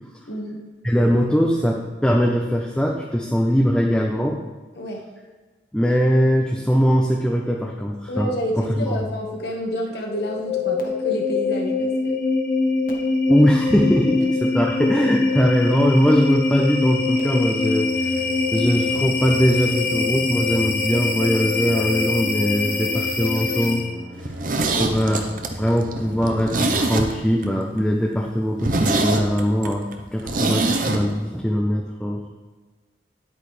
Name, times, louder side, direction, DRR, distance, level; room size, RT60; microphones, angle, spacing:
voice 1, 0.3-0.6 4.7-5.0 8.1-12.1 14.2-14.6 24.4-24.9, equal, 65° left, 0 dB, 1.5 m, -29 dB
voice 2, 0.8-4.4 5.7-8.3 8.6-9.0 13.3-18.2 18.5-23.8 24.8-25.3 25.5-29.9 30.1-32.5, equal, 5° left, -1 dB, 0.6 m, -21 dB
sound 1, 10.1-24.0, left 3 dB, 50° left, 1.1 m, -23 dB
sound 2, 17.6-27.0, equal, 80° right, 1.0 m, -39 dB
Zipper (clothing), 24.2-27.5 27.8-27.9 28.2-28.3 28.6-31.0 31.3-31.4, right 2 dB, 50° right, 0.8 m, -24 dB
10.0 x 8.6 x 3.3 m, 1.3 s
head